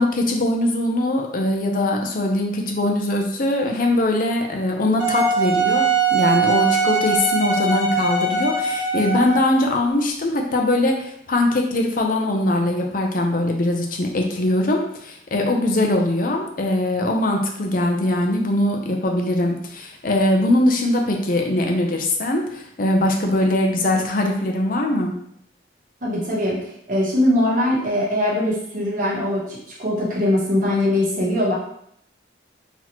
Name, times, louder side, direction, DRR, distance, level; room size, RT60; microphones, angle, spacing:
voice 1, 0.0-25.1, left 1 dB, 50° left, 2 dB, 0.6 m, -21 dB
Wind instrument woodwind instrument, 5.0-9.5, right 4 dB, 90° right, 1.0 m, -21 dB
voice 2, 26.0-26.6 26.9-31.5, left 1 dB, 45° right, -4 dB, 1.2 m, -21 dB
4.0 x 2.9 x 3.0 m, 0.70 s
head